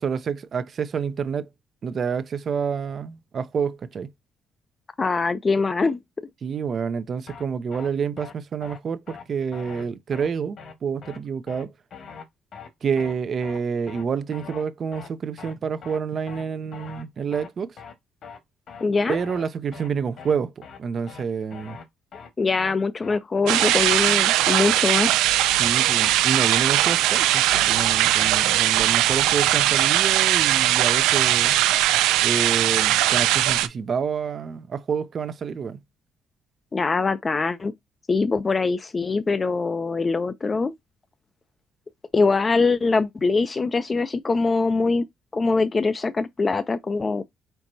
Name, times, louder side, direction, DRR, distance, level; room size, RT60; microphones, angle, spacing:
voice 1, 0.0-1.5 1.8-4.1 6.4-11.7 12.8-17.8 19.1-21.8 25.6-31.6 32.2-35.8, right 6 dB, 50° right, 0.6 m, -28 dB
voice 2, 5.0-6.0 18.8-19.2 22.4-25.2 36.7-37.7 38.1-40.7 42.1-45.1 45.3-47.2, left 4 dB, 30° left, 0.5 m, -23 dB
sound 1, 7.3-7.4 7.7-7.9 8.2-8.3 8.6-8.8 9.1-9.2 9.5-9.8 10.1-10.3 10.6-10.7 11.0-11.2 11.5-11.6 11.9-12.2 12.5-12.7 13.0-13.1 13.4-13.6 13.9-14.0 14.3-14.6 14.9-15.1 15.4-15.5 15.8-16.0 16.3-16.4 16.7-17.0 17.3-17.5 17.8-17.9 18.2-18.4 18.7-18.8 19.1-19.4 19.7-19.9 20.2-20.3 20.6-20.8 21.1-21.2 21.5-21.8 22.1-22.3 22.6-22.7 23.0-23.2 23.5-23.6 23.9-24.2 24.5-24.7 25.0-25.1 25.4-25.6 25.9-26.0 26.3-26.5, left 6 dB, 60° left, 1.5 m, -41 dB
sound 2, 23.5-33.7, right 13 dB, 90° right, 0.4 m, -20 dB
4.5 x 4.3 x 2.7 m
cardioid pair, 80°, 0 cm